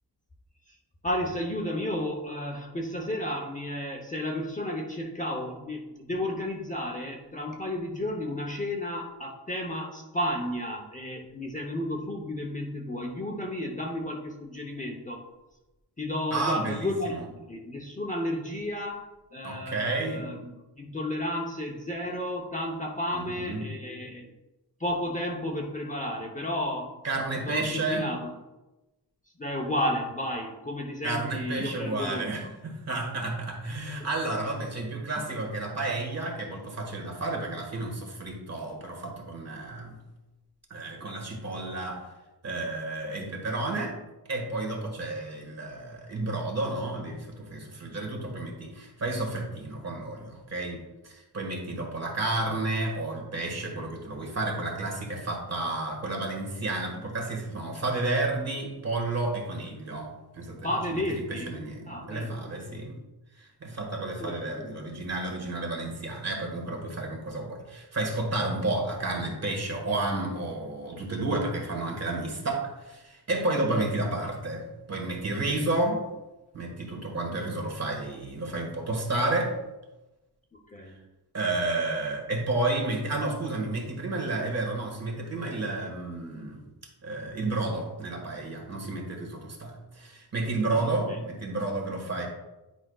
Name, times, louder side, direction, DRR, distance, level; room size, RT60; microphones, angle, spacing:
voice 1, 1.0-15.2 16.0-19.0 19.3-20.5 20.8-24.3 24.8-26.9 27.5-28.3 29.4-32.3 60.6-61.5 61.9-62.4 64.2-64.7 73.7-73.8 80.7-81.0 90.7-91.2, left 1 dB, 20° left, 0 dB, 0.8 m, -32 dB
voice 2, 16.3-17.3 19.4-20.3 23.1-23.7 27.0-28.1 31.0-40.0 40.7-42.0 42.4-44.0 44.3-61.0 61.3-63.0 63.4-74.6 74.9-76.0 76.5-79.5 80.8-80.9 81.3-86.6 87.0-92.3, right 2 dB, 40° right, 0 dB, 1.6 m, -31 dB
10.0 x 5.0 x 2.3 m, 1.0 s
wide cardioid pair, 135°, 40 cm